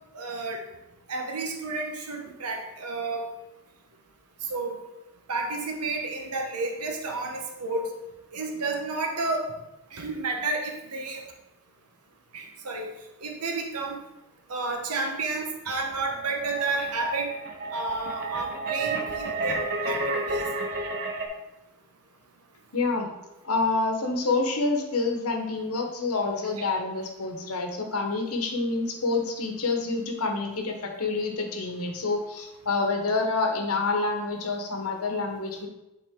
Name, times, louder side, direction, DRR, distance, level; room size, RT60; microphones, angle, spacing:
voice 1, 0.1-0.6 1.1-3.2 4.5-4.8 5.3-7.9 8.3-9.5 9.9-11.2 12.3-12.9 13.2-14.0 14.5-17.3 17.7-20.5, right 3 dB, 85° right, 2 dB, 1.1 m, -31 dB
sound 1, 15.7-21.3, right 3 dB, 45° right, 0.8 m, -31 dB
voice 2, 22.7-23.1 23.4-35.7, left 3 dB, 75° left, 3 dB, 1.1 m, -27 dB
8.3 x 4.2 x 3.7 m, 0.96 s
head